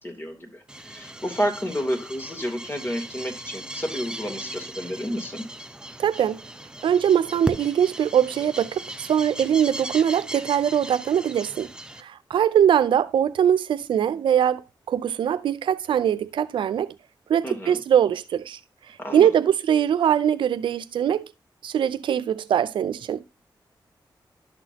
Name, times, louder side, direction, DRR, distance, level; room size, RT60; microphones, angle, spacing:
voice 1, 0.0-5.5 17.4-17.8 19.0-19.3, equal, 25° left, 3.1 m, -30 dB
sound 1, 0.7-12.0, right 1 dB, 10° right, 0.8 m, -38 dB
voice 2, 6.0-6.4 6.8-11.7 12.0-16.9 17.3-18.6 19.1-21.3 21.6-23.2, right 9 dB, 90° right, 0.5 m, -22 dB
11.5 x 6.0 x 2.8 m
cardioid pair, 60°, 8 cm